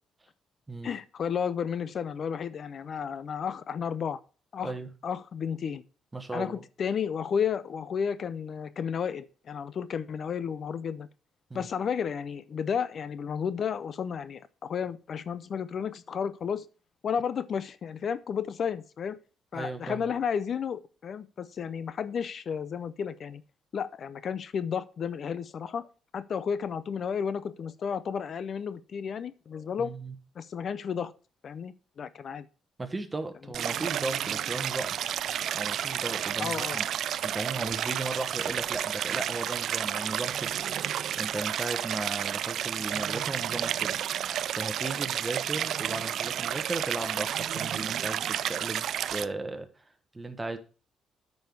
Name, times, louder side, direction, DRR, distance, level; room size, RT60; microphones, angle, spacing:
voice 1, 0.8-4.2 4.5-4.7 5.0-5.8 6.3-11.1 11.5-16.6 17.0-19.2 19.5-23.4 23.7-25.9 26.1-29.9 30.4-31.1 31.4-32.5 36.4-36.8, left 7 dB, 55° left, 0.5 m, -32 dB
voice 2, 6.1-6.6 11.5-11.7 19.5-20.1 29.8-30.1 32.8-35.0 35.5-36.8 37.2-40.6 41.2-44.0 44.5-48.9 49.1-49.9 50.1-50.6, right 2 dB, 20° right, 1.2 m, -36 dB
Stream, 33.5-49.3, right 10 dB, 70° right, 0.3 m, -31 dB
9.0 x 5.5 x 4.5 m
cardioid pair, 90°, 0 cm